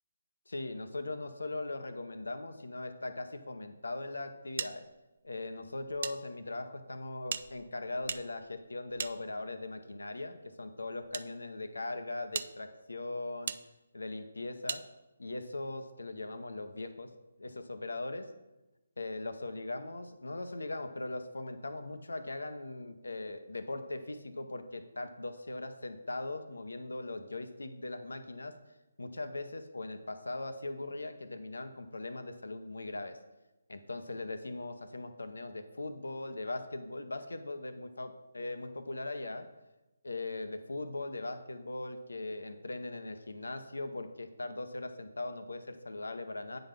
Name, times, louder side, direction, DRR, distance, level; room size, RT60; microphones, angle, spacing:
voice 1, 0.5-4.8 5.2-13.5 13.9-14.8 15.2-17.1 17.4-18.3 19.0-28.5 29.0-33.2 33.7-39.5 40.0-46.6, left 2 dB, 90° left, 9 dB, 0.8 m, -40 dB
sound 1, 4.6-6.2 6.4-6.5 7.2-9.7 10.5-11.3 11.8-11.9 12.3-12.5 13.5-13.6 14.7-14.8, right 6 dB, 50° right, 0.3 m, -39 dB
8.9 x 3.9 x 5.1 m, 1.0 s
figure-of-eight pair, 155°, 0 cm